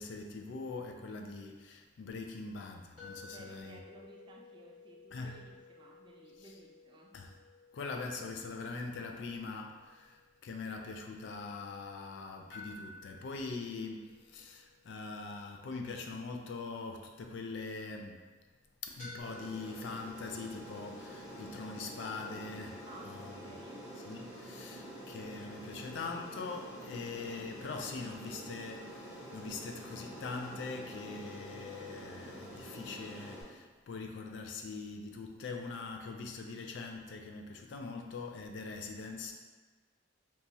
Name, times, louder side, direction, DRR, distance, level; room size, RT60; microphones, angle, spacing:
voice 1, 0.0-3.8 5.1-5.4 7.1-7.3 7.7-18.3 18.8-23.3 24.1-39.3, left 4 dB, 65° left, 3 dB, 0.3 m, -42 dB
sound 1, 3.0-11.9 12.5-17.6 19.0-20.1, left 2 dB, 45° left, 1.3 m, -55 dB
voice 2, 3.3-7.2 22.9-23.9, right 2 dB, 25° right, -1 dB, 0.3 m, -56 dB
Aircraft, 19.2-33.4, equal, 10° right, 0.7 m, -47 dB
2.9 x 2.3 x 2.6 m, 1.3 s
head